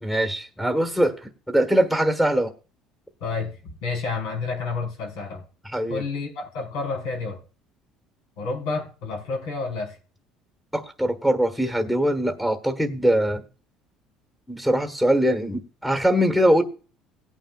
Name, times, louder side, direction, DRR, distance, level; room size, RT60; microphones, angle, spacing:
voice 1, 0.0-2.5 5.6-6.0 10.7-13.4 14.5-16.6, right 1 dB, 5° left, 1.4 m, -22 dB
voice 2, 3.2-5.4 5.9-7.4 8.4-9.9, left 4 dB, 85° left, 4.8 m, -30 dB
18.0 x 9.0 x 2.4 m
cardioid pair, 130°, 0 cm